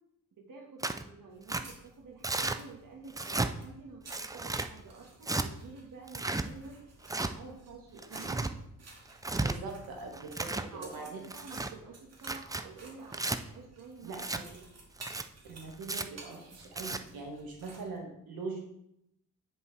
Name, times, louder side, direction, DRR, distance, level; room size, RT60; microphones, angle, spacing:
voice 1, 0.3-8.5 10.7-14.8, right 4 dB, 65° right, 0 dB, 1.6 m, -50 dB
Tearing, 0.8-1.0 1.5-1.6 2.2-2.6 3.1-3.5 4.1-4.7 5.2-5.5 6.1-6.5 7.0-7.3 8.0-8.5 9.1-9.6 10.1-10.7 11.2-11.7 12.2-12.6 13.1-13.4 14.1-14.4 15.0-15.2 15.8-16.1 16.6-17.0, right 2 dB, 10° right, 0.4 m, -33 dB
sound 1, 1.3-18.0, right 3 dB, 45° right, 2.0 m, -54 dB
voice 2, 9.3-11.2 14.0-14.2 15.4-18.6, right 3 dB, 85° right, 0 dB, 1.6 m, -42 dB
9.3 x 5.4 x 3.3 m, 0.77 s
cardioid pair, 85°, 35 cm